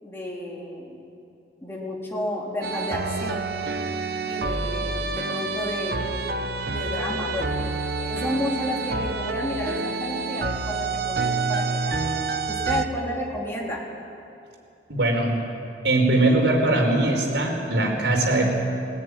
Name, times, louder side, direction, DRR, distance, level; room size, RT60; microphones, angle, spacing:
voice 1, 0.0-1.0 1.6-3.5 4.2-7.6 8.0-13.8, left 1 dB, 15° left, -4 dB, 3.7 m, -32 dB
sound 1, 2.6-12.9, right 3 dB, 60° right, 1.0 m, -28 dB
voice 2, 14.9-15.3 15.8-18.5, right 2 dB, 80° right, 1 dB, 4.7 m, -21 dB
18.5 x 18.5 x 10.0 m, 2.6 s
head